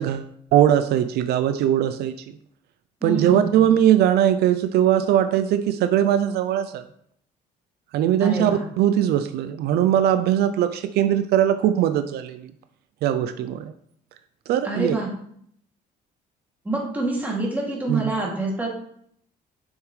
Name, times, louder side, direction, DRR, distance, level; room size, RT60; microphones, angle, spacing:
voice 1, 0.0-2.4 3.0-6.8 7.9-12.5 13.0-13.7 14.5-15.0 17.9-18.1, right 10 dB, 75° right, 11 dB, 0.5 m, -20 dB
voice 2, 3.0-3.6 8.2-8.6 14.6-15.1 16.6-18.7, right 2 dB, 10° right, -3 dB, 2.5 m, -26 dB
7.2 x 6.3 x 3.2 m, 0.67 s
cardioid pair, 110°, 17 cm